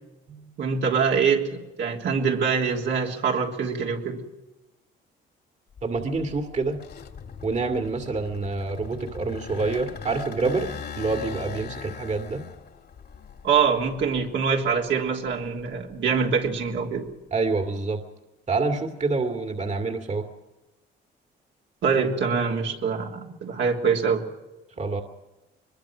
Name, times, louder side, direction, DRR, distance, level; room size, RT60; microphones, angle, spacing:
voice 1, 0.3-4.2 13.4-17.1 21.8-24.2, right 6 dB, 70° right, 0 dB, 3.5 m, -24 dB
sound 1, 5.8-14.8 15.3-17.1, left 6 dB, 55° left, 2.5 m, -40 dB
voice 2, 5.8-6.8 7.4-10.7 11.0-12.4 17.3-18.0 18.5-20.3 24.8-25.0, right 3 dB, 35° right, 4 dB, 2.4 m, -27 dB
23.0 x 21.5 x 6.2 m, 1.0 s
cardioid pair, 90°, 20 cm